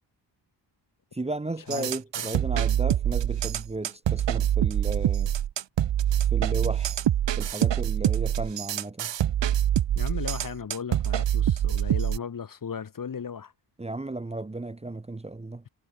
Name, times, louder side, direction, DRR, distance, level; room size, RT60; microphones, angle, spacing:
voice 1, 1.1-5.3 6.2-7.0 7.4-9.1 13.8-15.6, right 2 dB, 15° right, 1.1 m, -34 dB
sound 1, 1.7-12.2, right 11 dB, 75° right, 1.5 m, -25 dB
voice 2, 9.9-13.5, left 6 dB, 50° left, 2.6 m, -36 dB
wide cardioid pair, 115°, 44 cm